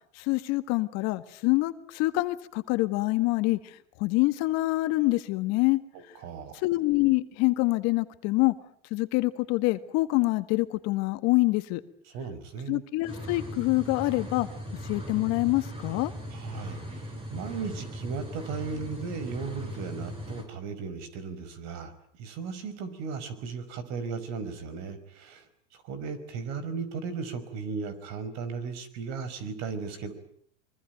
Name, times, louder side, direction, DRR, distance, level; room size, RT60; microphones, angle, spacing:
voice 1, 0.1-3.6 4.0-5.8 6.6-8.5 8.9-11.8 12.7-14.5 14.8-16.1, left 20 dB, 45° left, 11 dB, 1.7 m, -26 dB
voice 2, 5.9-6.6 12.1-12.8 16.3-25.5 25.7-30.1, right 5 dB, 45° right, 14 dB, 5.1 m, -36 dB
sound 1, 13.0-20.4, equal, 15° right, 7.7 m, -39 dB
24.0 x 23.5 x 9.3 m, 0.64 s
hypercardioid pair, 115°, 36 cm